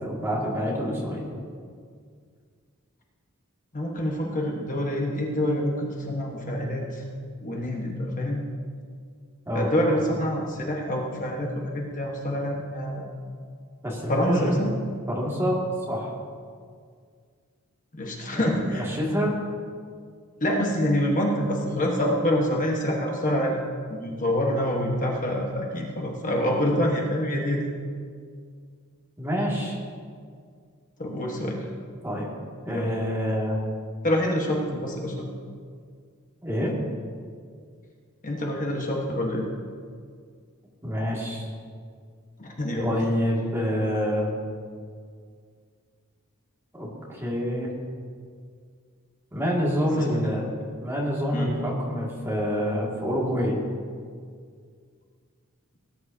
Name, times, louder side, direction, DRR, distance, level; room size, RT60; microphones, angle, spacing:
voice 1, 0.0-1.3 9.5-9.7 13.8-14.6 15.1-16.1 18.3-19.3 29.2-29.8 32.0-32.3 32.7-33.6 36.4-36.7 40.8-41.4 42.8-44.3 46.7-47.7 49.3-50.4 50.8-53.6, equal, 10° right, -4 dB, 2.2 m, -27 dB
voice 2, 3.7-7.0 7.4-8.4 9.5-13.1 14.1-14.7 17.9-18.9 20.4-23.6 23.9-27.7 31.0-31.6 32.7-32.9 34.0-35.3 38.2-39.5 42.4-43.0 49.9-50.2 51.3-51.5, left 1 dB, 40° left, -1 dB, 1.3 m, -26 dB
18.5 x 9.8 x 2.8 m, 2.1 s
head